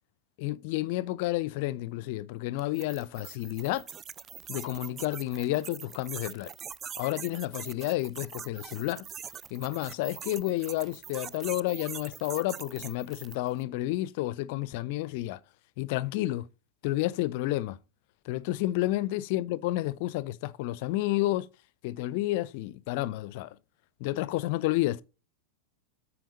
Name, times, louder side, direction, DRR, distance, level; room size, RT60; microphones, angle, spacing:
voice 1, 0.4-3.9 4.5-6.5 7.0-9.1 9.5-15.4 15.8-16.5 16.8-17.8 18.3-21.5 21.8-23.5 24.0-25.0, left 16 dB, 50° left, 0.5 m, -30 dB
sound 1, 2.6-13.5, right 8 dB, 25° right, 0.3 m, -43 dB
9.1 x 4.6 x 5.1 m
figure-of-eight pair, 90°, 0 cm